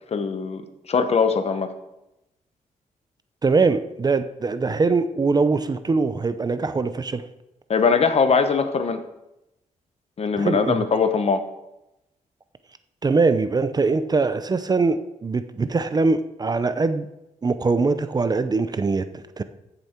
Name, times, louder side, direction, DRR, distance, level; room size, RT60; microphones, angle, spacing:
voice 1, 0.1-0.6 0.9-1.7 7.7-9.0 10.2-11.4, left 5 dB, 50° left, 9 dB, 1.0 m, -21 dB
voice 2, 3.4-7.2 10.4-10.8 13.0-17.1 17.4-19.4, right 4 dB, 30° right, 11 dB, 0.6 m, -22 dB
15.0 x 6.9 x 4.4 m, 0.92 s
wide cardioid pair, 115°, 14 cm